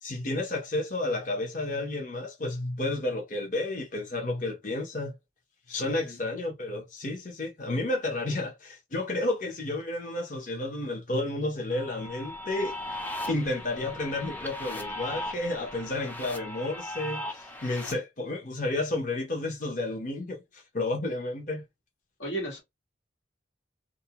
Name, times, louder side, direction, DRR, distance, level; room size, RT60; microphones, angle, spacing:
voice 1, 0.0-5.1 5.7-12.8 13.3-21.6, left 2 dB, 45° left, 0.7 m, -31 dB
voice 2, 5.8-6.2 22.2-22.6, right 1 dB, 85° left, 1.4 m, -35 dB
sound 1, 11.7-17.9, left 1 dB, 10° left, 0.4 m, -38 dB
2.5 x 2.1 x 2.8 m
head